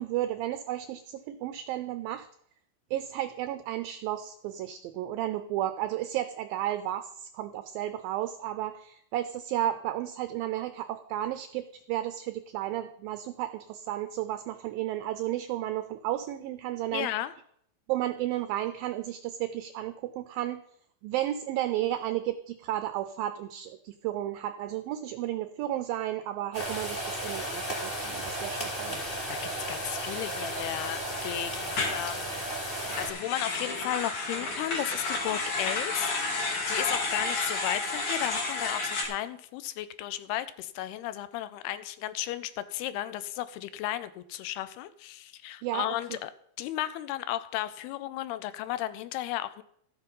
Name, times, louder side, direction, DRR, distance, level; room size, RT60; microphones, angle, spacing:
voice 1, 0.0-2.3 2.9-17.1 17.9-20.6 21.0-29.0 45.6-45.9, right 13 dB, 85° right, 10 dB, 2.1 m, -33 dB
voice 2, 16.9-17.3 28.9-29.0 29.3-29.4 29.7-32.4 32.9-46.3 46.6-49.6, left 13 dB, 80° left, 14 dB, 2.5 m, -34 dB
sound 1, 26.5-33.1, right 1 dB, 10° left, 3.2 m, -34 dB
sound 2, 31.7-32.0 32.7-39.0, left 3 dB, 50° left, 3.5 m, -31 dB
13.0 x 8.2 x 5.4 m, 0.69 s
omnidirectional pair, 4.7 m